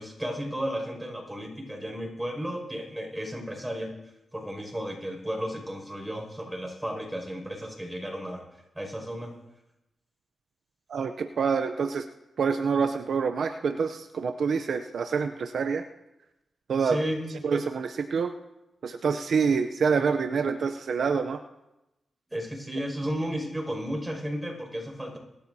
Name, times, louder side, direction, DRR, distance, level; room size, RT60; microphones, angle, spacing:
voice 1, 0.0-3.9 4.3-8.4 8.7-9.3 16.8-17.4 22.3-25.2, equal, 10° right, 1 dB, 5.7 m, -33 dB
voice 2, 10.9-12.1 12.4-15.9 16.7-17.0 17.4-18.3 18.8-21.4, right 5 dB, 70° right, 7 dB, 0.6 m, -26 dB
21.5 x 13.0 x 2.8 m, 0.95 s
cardioid pair, 75°, 0 cm